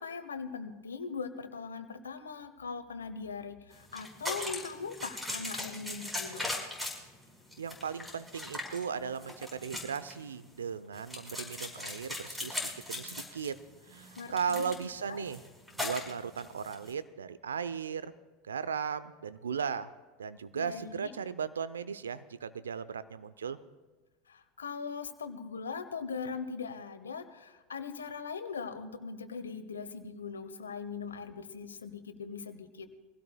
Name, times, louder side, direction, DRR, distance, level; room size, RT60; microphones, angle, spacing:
voice 1, 0.0-6.5 14.2-14.7 15.1-15.3 20.5-21.1 24.3-32.9, left 5 dB, 85° left, 10 dB, 0.9 m, -40 dB
sound 1, 3.7-16.9, left 1 dB, 5° right, 4.8 m, -40 dB
voice 2, 7.6-12.6 12.9-13.6 13.9-15.4 15.7-18.1 18.5-19.9 20.2-23.6, right 6 dB, 85° right, 14 dB, 0.6 m, -36 dB
24.0 x 16.0 x 2.3 m, 1.3 s
hypercardioid pair, 85°, 0 cm